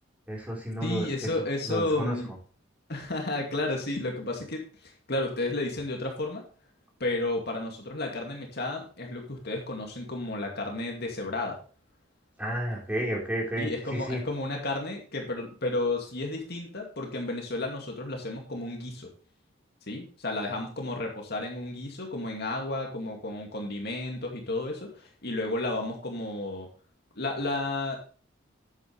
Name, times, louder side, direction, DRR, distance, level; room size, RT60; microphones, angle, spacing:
voice 1, 0.3-1.1 1.4-2.2 12.4-14.2, equal, 10° right, -3 dB, 4.2 m, -32 dB
voice 2, 0.8-2.3 2.9-6.4 7.0-11.6 13.6-19.1 19.9-26.7 27.1-28.0, left 2 dB, 60° left, 1 dB, 2.3 m, -32 dB
10.0 x 8.9 x 3.3 m, 0.39 s
head